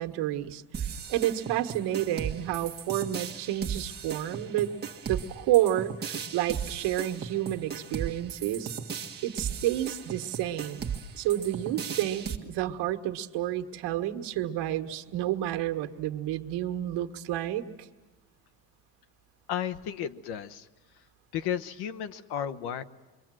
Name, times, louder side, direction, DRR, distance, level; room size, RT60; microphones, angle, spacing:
voice 1, 0.0-4.8 5.1-8.7 9.2-10.9 11.1-17.7, right 13 dB, 85° right, 5 dB, 1.5 m, -30 dB
sound 1, 0.7-12.4, right 7 dB, 25° right, 1.6 m, -36 dB
voice 2, 19.5-20.7 21.3-22.8, left 9 dB, 65° left, 13 dB, 1.1 m, -33 dB
27.5 x 23.0 x 7.6 m, 1.2 s
cardioid pair, 160°, 41 cm